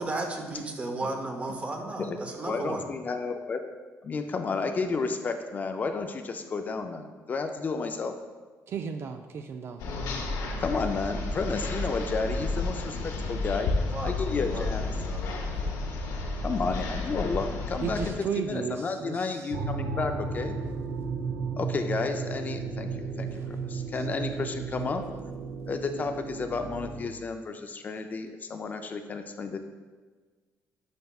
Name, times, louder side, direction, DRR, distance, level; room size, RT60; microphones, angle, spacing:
voice 1, 0.0-2.8 13.9-14.7 15.0-15.8 18.5-18.7, right 2 dB, 25° right, 3 dB, 0.8 m, -35 dB
voice 2, 2.4-3.6 4.0-8.1 10.6-13.7 14.0-14.9 16.4-20.6 21.6-23.4 23.7-25.1 25.7-29.6, left 4 dB, 30° left, 6 dB, 0.4 m, -32 dB
voice 3, 8.7-9.8 17.8-19.2, right 7 dB, 45° right, 6 dB, 0.3 m, -33 dB
sound 1, 9.8-18.1, left 3 dB, 90° left, 0.9 m, -31 dB
sound 2, 19.5-27.1, right 4 dB, 85° right, 0.7 m, -34 dB
9.2 x 5.4 x 2.3 m, 1.4 s
cardioid pair, 145°, 6 cm